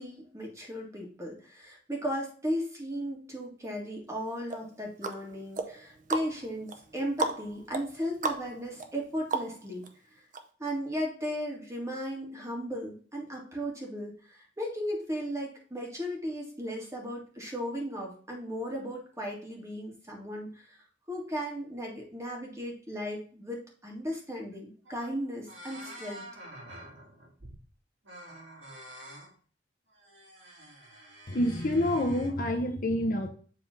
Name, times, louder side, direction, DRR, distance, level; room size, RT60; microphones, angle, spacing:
voice 1, 0.0-9.9 10.6-26.3, equal, 15° right, -1 dB, 2.0 m, -36 dB
sound 1, 4.5-9.9 10.3-10.4, right 3 dB, 45° right, 0.7 m, -36 dB
sound 2, 24.5-24.6 24.8-25.2 25.5-27.7 28.0-29.3 29.9-32.3, right 1 dB, 85° right, 2.6 m, -48 dB
voice 2, 31.3-33.3, left 1 dB, 45° left, 3 dB, 0.9 m, -27 dB
7.5 x 3.7 x 3.9 m, 0.43 s
head